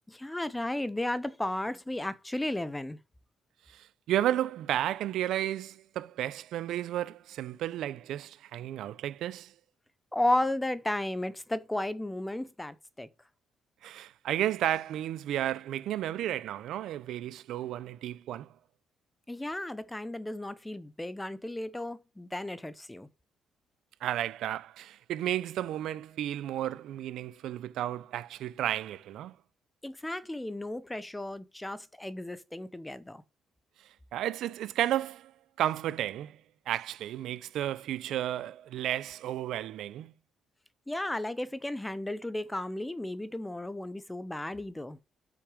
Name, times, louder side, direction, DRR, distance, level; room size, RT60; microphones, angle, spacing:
voice 1, 0.1-3.0 10.1-13.1 19.3-23.1 29.8-33.2 40.9-45.0, left 1 dB, 10° left, 0.7 m, -34 dB
voice 2, 3.7-9.5 13.8-18.5 24.0-29.4 34.1-35.3 35.6-36.4 36.7-40.1, right 12 dB, 75° right, 0.6 m, -33 dB
8.5 x 5.9 x 5.0 m
cardioid pair, 135°, 0 cm